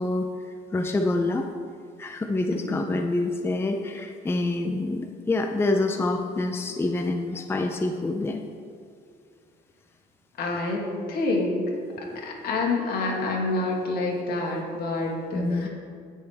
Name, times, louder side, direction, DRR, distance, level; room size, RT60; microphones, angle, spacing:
voice 1, 0.0-1.5 2.0-8.4 12.1-12.2 15.3-15.7, left 2 dB, 15° left, 4 dB, 0.5 m, -27 dB
voice 2, 10.4-11.6 12.0-15.7, left 2 dB, 65° left, -2 dB, 2.5 m, -27 dB
17.0 x 6.7 x 3.5 m, 2.2 s
cardioid pair, 110°, 17 cm